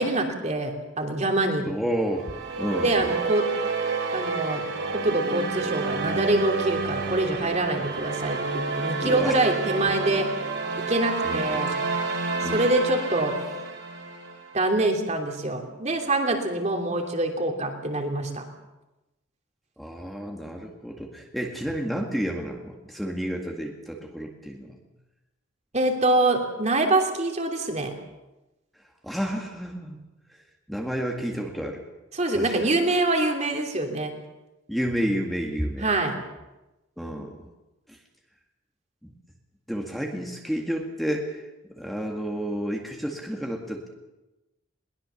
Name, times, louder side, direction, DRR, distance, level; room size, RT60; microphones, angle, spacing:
voice 1, 0.0-1.7 2.8-3.5 4.1-4.6 5.0-10.3 10.7-11.7 12.4-13.3 14.5-18.5 25.7-27.9 32.1-34.1 35.8-36.1, right 2 dB, 35° right, 3 dB, 3.1 m, -25 dB
voice 2, 1.7-3.2 9.0-9.4 11.2-11.6 12.4-12.6 19.8-24.8 29.0-30.0 30.3-31.8 32.3-32.8 34.7-35.9 37.0-37.4 37.9-38.0 39.0-39.1 39.7-43.9, equal, ahead, 1 dB, 2.0 m, -31 dB
sound 1, 2.1-14.5, right 4 dB, 60° right, 4.5 m, -29 dB
22.0 x 20.0 x 7.1 m, 1.0 s
head